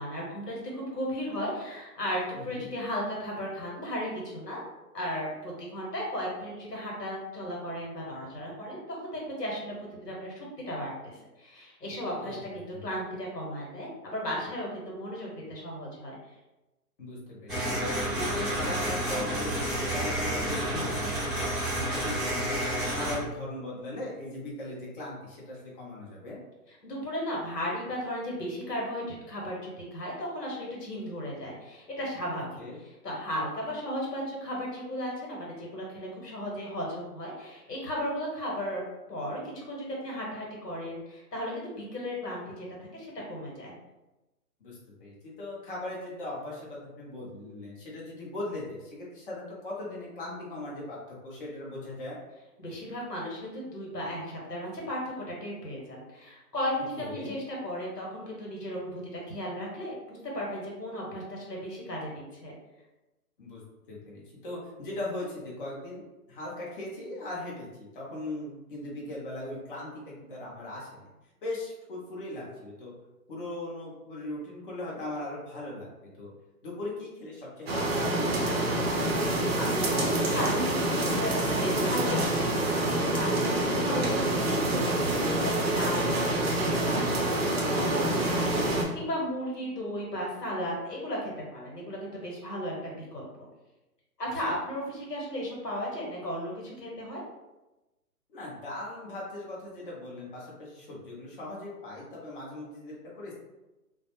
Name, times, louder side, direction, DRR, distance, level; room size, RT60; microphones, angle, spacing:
voice 1, 0.0-4.6 4.9-16.2 26.7-32.4 32.8-38.8 39.1-42.6 42.9-43.7 52.6-62.5 79.6-82.2 83.1-93.3 94.2-97.2, equal, 90° left, -3 dB, 1.2 m, -35 dB
voice 2, 2.3-2.7 12.2-12.4 12.7-12.8 17.0-26.4 32.6-32.8 44.6-51.0 51.2-52.2 57.0-57.4 63.4-63.6 63.9-71.1 71.4-72.9 73.3-76.3 76.6-78.8 98.3-103.3, left 2 dB, 35° left, -5 dB, 0.7 m, -39 dB
sound 1, 17.5-23.2, right 1 dB, 5° right, 0.7 m, -30 dB
sound 2, 77.7-88.8, right 1 dB, 40° right, 0.6 m, -27 dB
2.3 x 2.1 x 2.8 m, 1.0 s
figure-of-eight pair, 140°, 47 cm